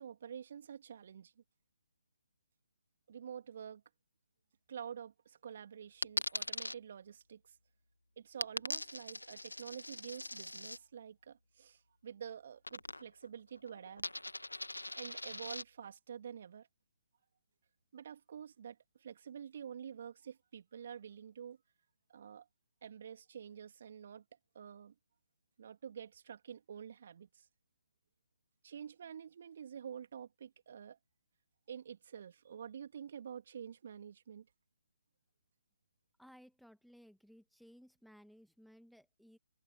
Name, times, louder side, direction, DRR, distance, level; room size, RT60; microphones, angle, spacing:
voice 1, 0.0-1.3 3.1-3.8 4.7-7.5 8.2-14.0 15.0-16.7 17.9-21.6 22.1-22.5 22.8-24.2 24.5-24.9 25.6-27.5 28.6-31.0 31.7-34.5, right 8 dB, 50° right, 2.7 m, -48 dB
Coin (dropping), 6.0-6.8 8.4-10.8 12.6-13.3 13.6-15.6, left 1 dB, 85° left, 1.8 m, -41 dB
voice 2, 36.2-39.4, equal, ahead, 2.0 m, -60 dB
figure-of-eight pair, 140°, 0 cm